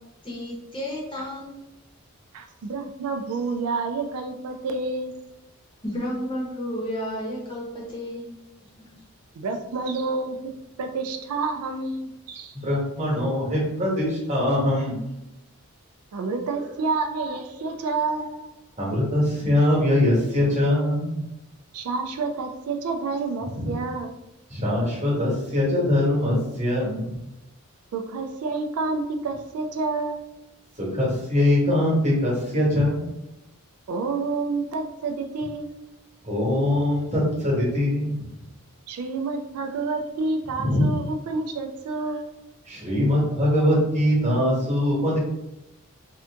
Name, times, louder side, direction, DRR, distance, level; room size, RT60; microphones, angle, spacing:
voice 1, 0.2-1.5 5.8-8.3, equal, 25° left, -5 dB, 0.8 m, -31 dB
voice 2, 2.3-5.1 9.4-10.4 10.8-12.0 16.1-18.3 21.7-24.1 27.9-30.2 33.9-35.7 38.9-42.3, right 3 dB, 85° right, 4 dB, 0.4 m, -28 dB
voice 3, 12.7-15.1 17.2-17.3 18.1-18.4 18.8-21.2 23.5-23.7 24.5-27.2 30.8-33.1 36.2-38.3 40.6-40.8 42.7-45.2, left 1 dB, 30° right, -5 dB, 1.1 m, -22 dB
2.7 x 2.5 x 3.3 m, 0.90 s
head